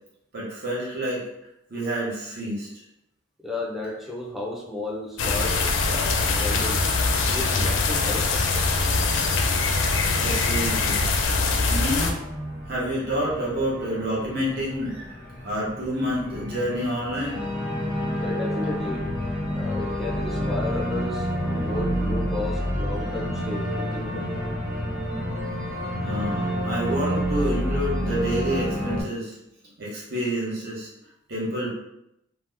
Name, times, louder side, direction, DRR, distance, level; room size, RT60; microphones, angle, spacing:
voice 1, 0.3-1.2 1.7-2.7 10.2-11.1 11.7-12.2 12.7-14.9 15.4-17.4 26.0-29.3 29.8-30.9 31.3-31.7, equal, 50° right, -6 dB, 0.8 m, -28 dB
voice 2, 3.4-6.8 7.2-8.7 18.2-19.1 19.6-24.4, left 2 dB, ahead, -3 dB, 0.4 m, -34 dB
sound 1, 5.2-12.1, left 3 dB, 70° left, 0.4 m, -23 dB
Organ, 12.2-29.0, equal, 70° right, 1.2 m, -29 dB
2.7 x 2.1 x 3.3 m, 0.83 s
head